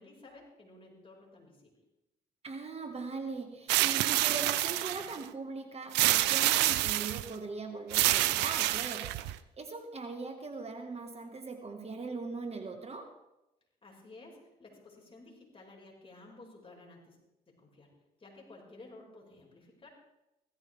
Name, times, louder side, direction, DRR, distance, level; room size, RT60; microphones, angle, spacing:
voice 1, 0.0-1.7 13.8-17.2 17.5-17.9 18.2-19.9, left 2 dB, 35° left, -1 dB, 5.2 m, -54 dB
voice 2, 2.4-13.2, right 3 dB, 40° right, 6 dB, 1.6 m, -40 dB
sound 1, 3.7-5.2 5.9-7.3 7.9-9.3, right 16 dB, 90° right, 0.5 m, -27 dB
16.5 x 14.0 x 3.5 m, 0.93 s
supercardioid pair, 65°, 17 cm